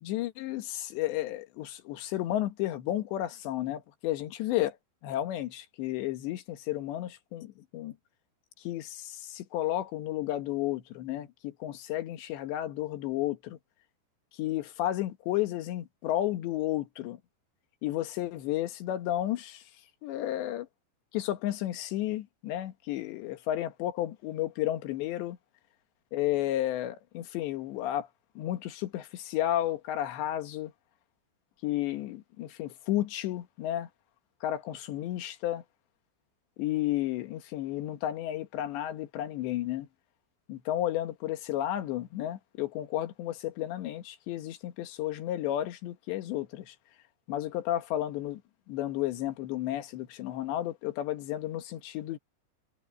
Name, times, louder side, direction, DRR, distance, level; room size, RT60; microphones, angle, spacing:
voice 1, 0.0-4.8 5.0-8.0 8.6-13.6 14.4-17.2 17.8-19.6 20.0-20.7 21.1-25.4 26.1-28.1 28.4-30.7 31.6-33.9 34.4-35.6 36.6-39.9 40.5-46.8 47.3-48.4 48.7-52.2, left 13 dB, 80° left, 3.7 m, -32 dB
omnidirectional pair, 5.0 m